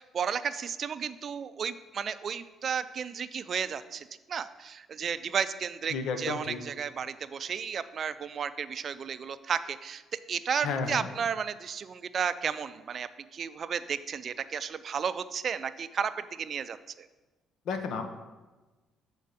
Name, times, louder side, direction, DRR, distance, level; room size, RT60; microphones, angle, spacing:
voice 1, 0.0-17.1, right 7 dB, 50° right, 13 dB, 0.4 m, -33 dB
voice 2, 5.9-6.6 10.6-11.1 17.7-18.0, left 5 dB, 70° left, 7 dB, 0.9 m, -32 dB
6.7 x 4.5 x 6.6 m, 1.2 s
cardioid pair, 100°, 0 cm